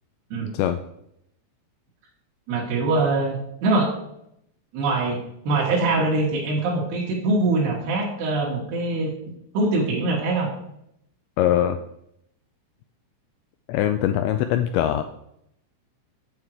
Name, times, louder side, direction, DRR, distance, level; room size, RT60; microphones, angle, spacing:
voice 1, 2.5-3.9 4.7-5.2 5.4-9.1 9.5-10.5, right 2 dB, 65° right, -5 dB, 3.2 m, -23 dB
voice 2, 11.4-11.8 13.7-15.0, left 11 dB, 85° left, 8 dB, 2.6 m, -22 dB
8.9 x 7.5 x 4.7 m, 0.77 s
omnidirectional pair, 5.5 m